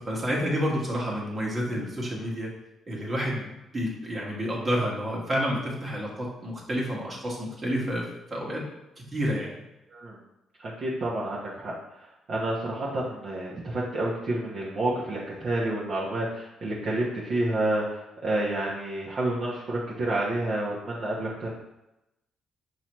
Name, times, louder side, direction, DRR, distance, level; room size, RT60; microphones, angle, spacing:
voice 1, 0.1-2.5 2.9-8.0 8.3-8.6 9.0-9.5, equal, 35° right, -4 dB, 1.4 m, -29 dB
voice 2, 10.6-21.5, right 1 dB, 55° right, -6 dB, 1.0 m, -29 dB
5.8 x 3.0 x 3.0 m, 0.92 s
cardioid pair, 90°, 0 cm